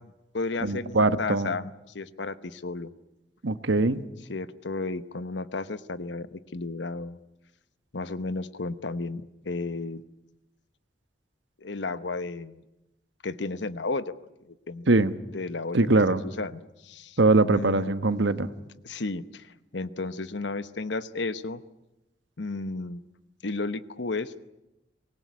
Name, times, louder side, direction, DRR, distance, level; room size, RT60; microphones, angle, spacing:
voice 1, 0.0-2.9 4.3-7.2 7.9-10.0 11.6-12.6 13.2-14.1 14.4-15.1 15.3-15.8 16.1-17.2 17.5-17.9 18.8-21.6 22.4-23.0 23.4-24.3, left 3 dB, 80° left, 14 dB, 1.0 m, -33 dB
voice 2, 0.6-1.5 3.4-4.0 14.9-15.1 15.7-16.2 17.2-18.5, right 2 dB, 90° right, 12 dB, 1.2 m, -22 dB
24.0 x 19.5 x 9.5 m, 0.95 s
head